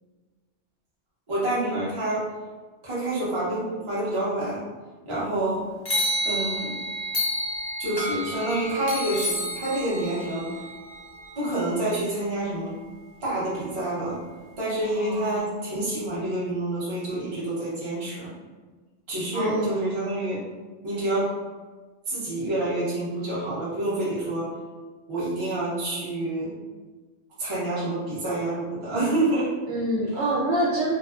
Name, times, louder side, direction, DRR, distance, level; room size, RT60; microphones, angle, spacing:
voice 1, 1.3-2.3 2.8-4.7 5.0-5.7 6.2-6.7 7.8-10.5 11.4-12.7 13.2-14.2 14.6-18.3 19.1-20.4 20.8-21.3 22.1-24.5 25.1-26.5 27.4-29.5, right 1 dB, 35° right, -8 dB, 0.5 m, -27 dB
sound 1, 5.9-12.0, equal, 40° left, 0.3 m, -30 dB
voice 2, 14.9-15.5 19.3-19.9 29.7-30.9, right 1 dB, 80° right, -6 dB, 0.9 m, -27 dB
2.6 x 2.3 x 2.3 m, 1.4 s
omnidirectional pair, 1.2 m